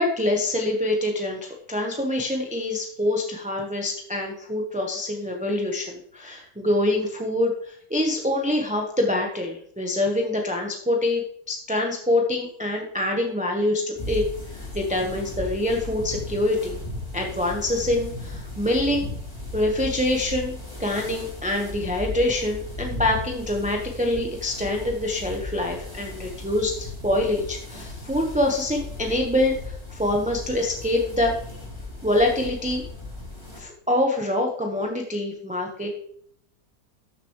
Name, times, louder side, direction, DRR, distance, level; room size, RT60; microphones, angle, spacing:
voice 1, 0.0-14.2 14.5-16.8 17.1-19.1 19.5-31.4 32.0-32.8 33.5-35.9, left 1 dB, 5° right, 1 dB, 0.9 m, -25 dB
sound 1, 13.9-33.6, left 2 dB, 20° left, 3.2 m, -36 dB
13.5 x 6.9 x 3.1 m, 0.65 s
omnidirectional pair, 1.6 m